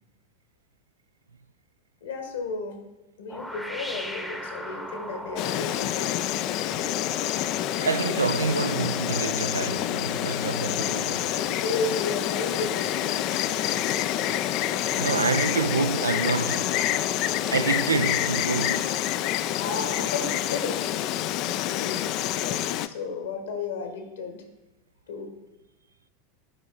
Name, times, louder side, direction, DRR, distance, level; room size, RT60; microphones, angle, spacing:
voice 1, 2.0-2.8 3.2-6.3 10.7-10.9 11.3-13.2 19.6-21.2 21.8-24.4 25.1-25.3, left 4 dB, 70° left, 1.4 m, -33 dB
sound 1, 3.3-22.1, left 1 dB, 5° left, 0.8 m, -41 dB
Insect, 5.4-22.9, left 13 dB, 50° left, 0.3 m, -27 dB
voice 2, 7.8-11.3 14.9-16.8 17.5-19.0, right 4 dB, 80° right, 0.4 m, -27 dB
9.9 x 5.2 x 4.1 m
figure-of-eight pair, 85°, 0 cm